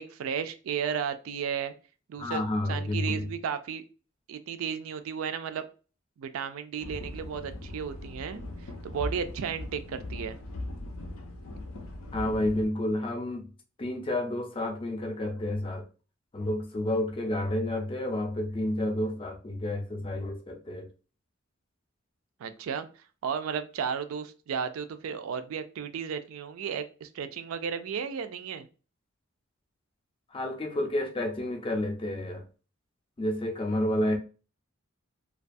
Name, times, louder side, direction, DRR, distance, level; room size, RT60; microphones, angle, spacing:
voice 1, 0.0-1.7 2.1-2.4 2.7-3.8 4.3-5.6 6.2-10.4 22.4-22.9 23.2-28.7, right 7 dB, 70° right, 0.3 m, -34 dB
voice 2, 2.2-3.3 12.1-13.5 13.8-15.8 16.3-20.9 30.3-32.4 33.2-34.2, left 1 dB, 25° left, 0.4 m, -30 dB
sound 1, 6.8-12.7, left 2 dB, 80° left, 0.5 m, -39 dB
2.3 x 2.3 x 2.5 m
head